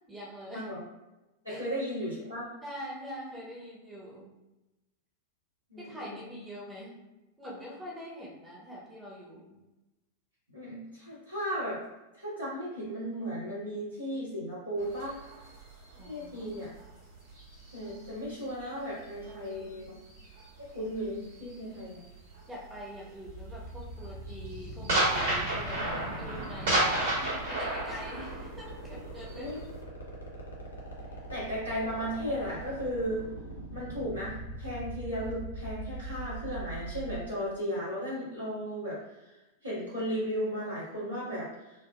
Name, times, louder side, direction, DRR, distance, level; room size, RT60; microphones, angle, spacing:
voice 1, 0.1-0.6 1.5-1.6 2.6-4.3 5.8-6.9 7.4-9.6 15.9-16.8 19.2-20.0 22.5-29.5 31.1-31.2, equal, 10° right, -4 dB, 0.7 m, -44 dB
voice 2, 1.4-2.5 5.7-6.1 10.5-11.8 12.1-15.2 16.0-16.7 17.7-19.9 20.6-22.0 29.4-29.6 31.3-33.3 33.7-39.3 39.6-41.7, equal, 85° right, -10 dB, 1.5 m, -35 dB
sound 1, 14.8-18.6 19.0-22.4 22.7-23.0 23.4-29.8, right 1 dB, 65° right, 1.4 m, -32 dB
sound 2, 23.3-37.2, right 1 dB, 75° left, 0.7 m, -41 dB
sound 3, 25.1-27.9, equal, 45° right, 0.6 m, -45 dB
3.4 x 2.2 x 2.3 m, 1.0 s
figure-of-eight pair, 90°, 0 cm